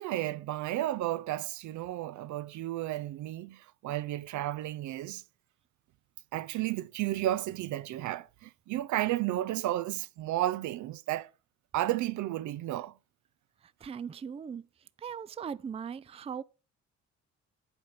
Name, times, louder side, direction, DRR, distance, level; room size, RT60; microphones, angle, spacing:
voice 1, 0.0-5.2 6.3-11.3 11.7-12.9, right 14 dB, 75° right, 0.5 m, -33 dB
voice 2, 13.6-14.7 15.0-16.4, right 7 dB, 20° right, 0.4 m, -39 dB
7.9 x 4.3 x 6.7 m
cardioid pair, 90°, 30 cm